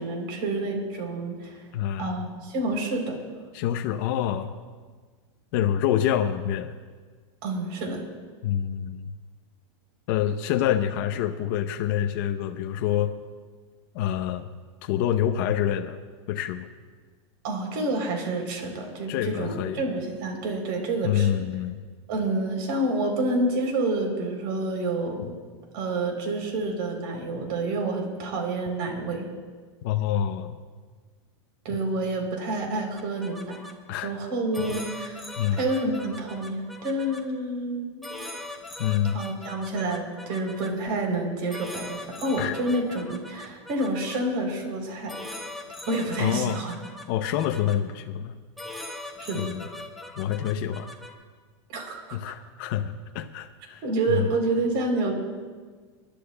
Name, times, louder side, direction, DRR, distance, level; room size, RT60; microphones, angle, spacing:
voice 1, 0.0-1.7 2.0-3.2 7.4-8.0 17.4-21.3 22.1-25.3 25.7-29.3 31.7-33.6 34.0-35.2 35.5-38.0 39.1-45.2 45.9-46.7 49.2-49.5 51.7-52.2 53.8-55.1, right 2 dB, 45° right, 2 dB, 3.5 m, -28 dB
voice 2, 1.7-2.2 3.5-4.5 5.5-6.8 8.4-9.1 10.1-13.1 13.9-14.5 14.8-16.0 16.3-16.7 19.1-19.8 21.0-21.8 29.8-30.6 31.7-31.8 33.9-34.1 34.6-34.7 35.4-35.6 38.8-39.2 42.4-42.5 46.2-46.6 47.1-48.3 49.3-49.6 50.2-50.9 52.1-54.3, left 10 dB, 40° left, 5 dB, 0.6 m, -27 dB
sound 1, 33.0-33.7 34.5-37.2 38.0-40.7 41.5-44.2 45.1-47.8 48.6-51.1, left 2 dB, ahead, 1.0 m, -40 dB
28.5 x 11.5 x 2.3 m, 1.5 s
supercardioid pair, 165°, 15 cm